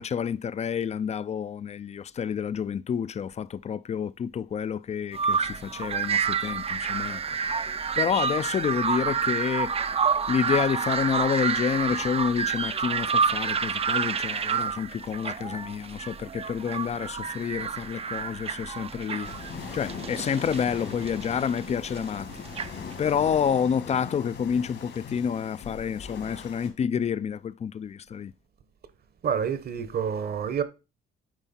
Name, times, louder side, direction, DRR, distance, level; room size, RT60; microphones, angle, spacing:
voice 1, 0.0-7.4 8.0-9.7 10.0-19.3 19.7-22.4 23.0-28.3, left 7 dB, 35° left, 0.4 m, -29 dB
sound 1, 5.1-23.4, right 6 dB, 30° right, 0.5 m, -29 dB
sound 2, 19.2-26.7, left 6 dB, 65° left, 2.0 m, -40 dB
voice 2, 29.2-30.6, right 7 dB, 50° right, 1.0 m, -28 dB
9.0 x 4.6 x 4.2 m
cardioid pair, 90°, 20 cm